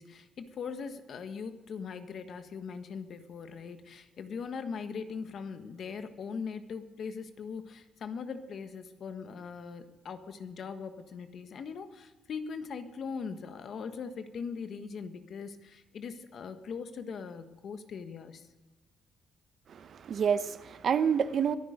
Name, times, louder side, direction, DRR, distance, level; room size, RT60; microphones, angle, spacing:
voice 1, 0.0-18.5, left 5 dB, 60° left, 1.4 m, -40 dB
voice 2, 19.7-21.6, right 7 dB, 55° right, 0.8 m, -28 dB
22.5 x 10.5 x 5.2 m
cardioid pair, 90°, 0 cm